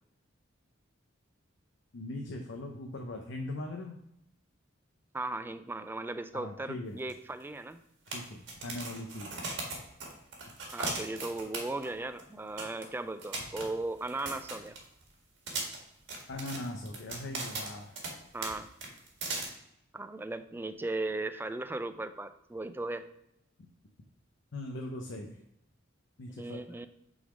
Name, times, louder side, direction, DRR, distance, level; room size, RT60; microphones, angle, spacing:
voice 1, 1.9-4.0 6.3-7.1 8.1-9.4 16.3-18.0 24.5-25.4 26.2-26.9, left 1 dB, 65° left, 2 dB, 0.7 m, -40 dB
voice 2, 5.1-7.8 10.7-14.8 18.3-18.7 19.9-23.1 26.3-26.9, right 2 dB, 10° right, 10 dB, 0.3 m, -37 dB
sound 1, 7.1-7.2 7.4-7.5 8.1-11.9 12.2-12.3 12.6-12.8 13.2-15.0 15.5-18.1 18.4-18.5 18.8-19.4, right 3 dB, 65° right, 1.7 m, -38 dB
6.2 x 4.0 x 4.8 m, 0.79 s
head